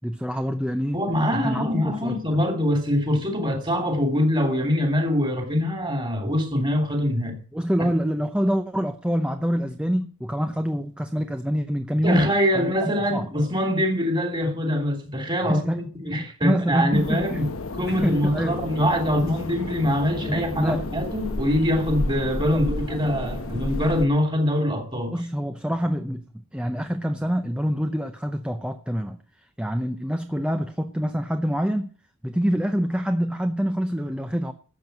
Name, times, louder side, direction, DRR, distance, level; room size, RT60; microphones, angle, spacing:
voice 1, 0.0-1.0 1.3-2.4 7.5-12.3 12.5-13.3 15.4-17.4 17.9-18.6 19.2-19.3 20.3-20.8 22.5-22.6 22.9-23.0 25.1-29.2 29.6-31.9 32.2-34.5, equal, 5° right, 0.6 m, -26 dB
voice 2, 0.9-7.4 12.0-17.5 17.7-25.1, equal, 20° right, 2.9 m, -24 dB
sound 1, 16.9-24.1, left 2 dB, 70° left, 1.0 m, -32 dB
12.5 x 7.8 x 7.9 m
head